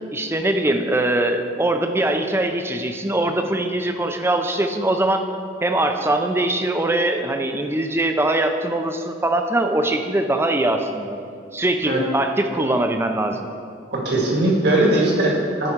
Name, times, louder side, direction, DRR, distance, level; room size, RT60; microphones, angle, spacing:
voice 1, 0.1-5.3 5.6-11.2 11.5-13.5, right 1 dB, 15° right, 6 dB, 0.5 m, -22 dB
voice 2, 13.9-15.7, right 1 dB, 60° right, -2 dB, 1.8 m, -19 dB
12.0 x 5.5 x 4.6 m, 2.3 s
head